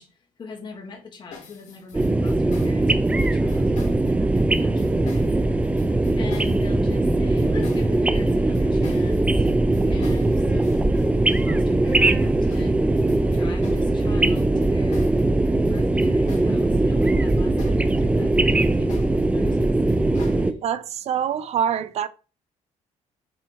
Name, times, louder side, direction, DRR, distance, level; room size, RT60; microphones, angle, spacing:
voice 1, 0.0-9.5 9.9-11.0 11.3-12.9 13.2-15.1 15.7-19.7 20.1-20.6, left 4 dB, 35° left, 2.5 m, -42 dB
sound 1, 1.3-16.6 16.9-20.4, left 4 dB, 70° left, 3.0 m, -45 dB
sound 2, 1.9-20.5, right 2 dB, 10° right, 0.6 m, -20 dB
voice 2, 20.6-22.1, right 8 dB, 60° right, 0.6 m, -25 dB
7.7 x 4.3 x 4.6 m
cardioid pair, 120°, 13 cm